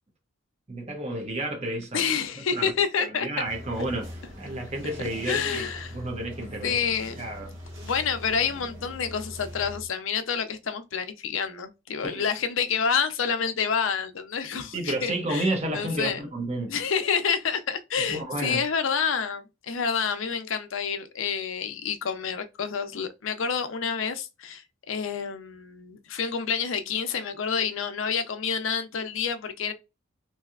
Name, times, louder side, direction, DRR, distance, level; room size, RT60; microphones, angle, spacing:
voice 1, 0.7-2.0 2.5-2.7 3.0-6.8 7.2-7.5 12.0-12.2 14.7-16.8 18.0-18.6, right 1 dB, 30° right, 0.9 m, -31 dB
voice 2, 1.9-3.3 5.2-6.0 6.6-7.3 7.8-15.5 15.7-16.2 16.7-29.7, left 6 dB, 80° left, 0.6 m, -28 dB
sound 1, 3.4-9.8, left 1 dB, 70° right, 1.1 m, -41 dB
3.2 x 2.7 x 2.3 m
head